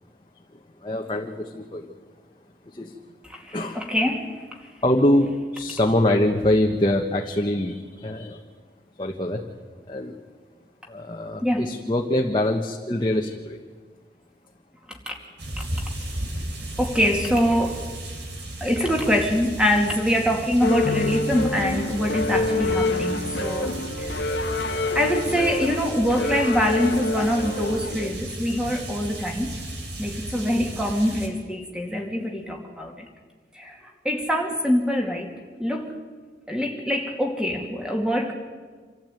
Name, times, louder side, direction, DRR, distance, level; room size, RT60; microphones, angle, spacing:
voice 1, 0.8-1.9 2.7-3.0 3.5-3.8 4.8-8.4 9.0-9.4 9.9-10.2 10.9-13.6, left 1 dB, 25° left, 0 dB, 1.3 m, -24 dB
voice 2, 3.3-4.3 11.4-11.7 14.9-15.2 16.8-17.8 18.6-24.3 24.9-29.6 30.0-33.1 33.5-33.8 34.0-35.9 36.5-38.3, equal, 5° right, 2 dB, 2.5 m, -24 dB
sound 1, 15.4-31.3, right 1 dB, 80° right, 3.3 m, -34 dB
sound 2, 20.6-28.1, left 2 dB, 75° left, 1.4 m, -27 dB
26.0 x 14.0 x 9.1 m, 1.5 s
head